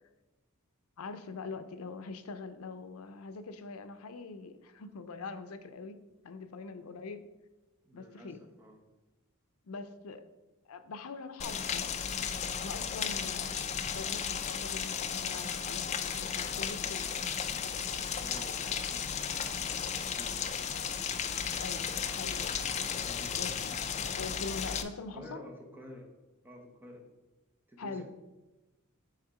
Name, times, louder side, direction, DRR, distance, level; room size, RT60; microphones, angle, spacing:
voice 1, 1.0-6.0 6.2-7.2 7.9-8.4 9.6-10.2 10.7-11.9 12.6-13.6 13.9-17.1 21.6-23.1 23.4-23.8 24.2-25.4 27.8-28.0, left 4 dB, 80° left, 10 dB, 0.5 m, -43 dB
voice 2, 7.8-8.8 18.1-20.3 23.1-23.3 25.1-26.1 26.4-27.0 27.7-28.0, left 1 dB, 10° right, 1 dB, 0.9 m, -51 dB
Rain, 11.4-24.8, left 7 dB, 30° left, 0.3 m, -34 dB
sound 1, 16.9-22.7, right 3 dB, 80° right, 1.0 m, -55 dB
6.6 x 3.6 x 4.7 m, 1.1 s
head